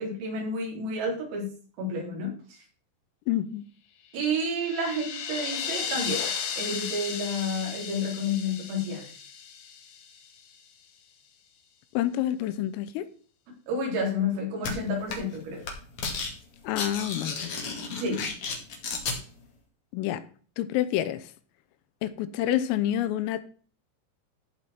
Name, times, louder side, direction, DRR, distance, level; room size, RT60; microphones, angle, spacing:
voice 1, 0.0-1.5 1.8-2.4 4.1-9.1 13.7-15.6 17.9-18.2, left 1 dB, 80° right, 6.8 m, -30 dB
voice 2, 3.3-3.7 11.9-13.1 16.6-17.5 19.9-20.2 20.6-21.3 22.0-23.4, left 12 dB, 85° left, 3.5 m, -28 dB
sound 1, 4.1-10.4, left 7 dB, 65° left, 2.9 m, -35 dB
sound 2, 14.6-14.7 15.1-15.4 15.6-16.3 16.6-19.2, left 4 dB, 50° left, 2.6 m, -32 dB
15.0 x 5.6 x 4.5 m
omnidirectional pair, 5.9 m